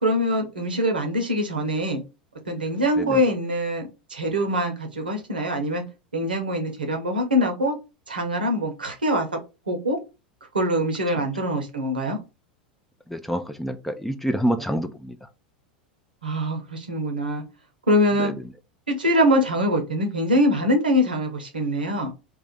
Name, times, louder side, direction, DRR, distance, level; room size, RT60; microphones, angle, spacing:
voice 1, 0.0-2.0 2.5-5.8 6.1-7.8 8.1-9.3 9.7-10.0 10.5-12.2 16.2-17.4 17.9-18.3 18.9-22.1, equal, 80° right, 0.8 m, -23 dB
voice 2, 13.1-15.2 18.2-18.3, equal, 5° left, 0.4 m, -27 dB
2.4 x 2.4 x 3.9 m
figure-of-eight pair, 85°, 5 cm